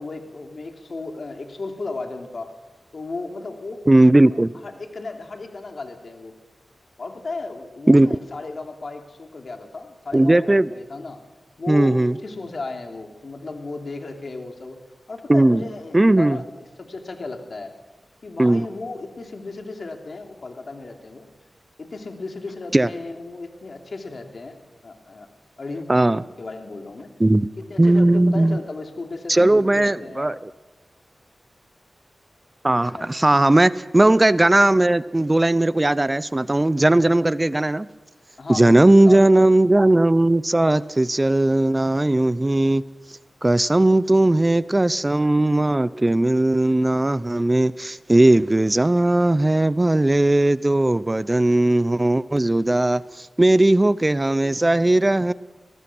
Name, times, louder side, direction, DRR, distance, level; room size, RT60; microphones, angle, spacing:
voice 1, 0.0-2.5 2.9-3.8 4.3-6.4 7.0-11.2 11.6-14.8 15.1-16.5 16.8-17.7 18.2-21.3 21.8-24.6 24.8-25.3 25.6-27.1 27.6-30.4 32.9-33.1 38.4-39.5 54.4-55.3, left 3 dB, 65° left, 4 dB, 3.2 m, -35 dB
voice 2, 3.9-4.5 7.9-8.1 10.1-10.7 11.7-12.1 15.3-15.6 15.9-16.4 18.4-18.6 22.7-22.9 25.9-26.2 27.2-27.5 27.8-28.6 29.3-30.5 32.6-37.9 38.5-42.8 43.4-55.3, right 1 dB, 25° right, 18 dB, 0.6 m, -17 dB
24.0 x 19.0 x 6.2 m, 1.1 s
cardioid pair, 45°, 0 cm